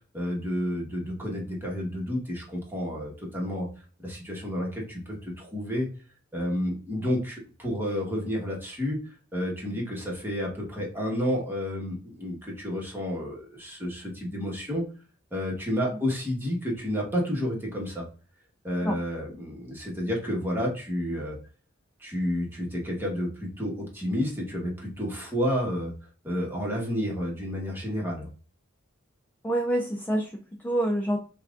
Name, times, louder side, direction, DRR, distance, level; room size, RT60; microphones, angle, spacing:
voice 1, 0.1-3.7 4.0-5.9 6.3-9.0 9.3-14.8 15.3-18.1 18.6-21.4 22.0-25.9 26.2-28.3, equal, 10° right, -2 dB, 1.2 m, -30 dB
voice 2, 29.4-31.2, right 1 dB, 10° left, 2 dB, 0.4 m, -27 dB
5.7 x 2.4 x 2.4 m, 0.38 s
head